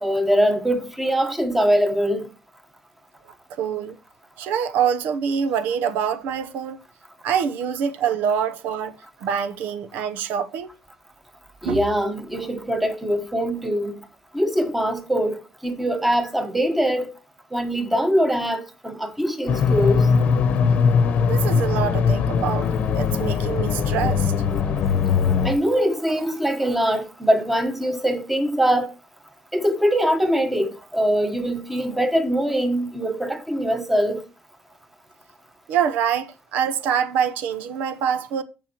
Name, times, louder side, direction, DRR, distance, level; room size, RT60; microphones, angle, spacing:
voice 1, 0.0-2.3 11.6-13.9 14.3-17.1 17.5-20.1 25.1-28.9 29.5-34.2, equal, 5° right, 1.2 m, -22 dB
voice 2, 3.6-4.0 4.4-6.8 7.2-10.7 11.6-11.8 21.2-24.3 35.7-38.4, right 7 dB, 85° right, 0.8 m, -25 dB
sound 1, 19.5-25.5, left 6 dB, 55° left, 0.9 m, -20 dB
14.5 x 5.4 x 2.9 m
cardioid pair, 140°, 3 cm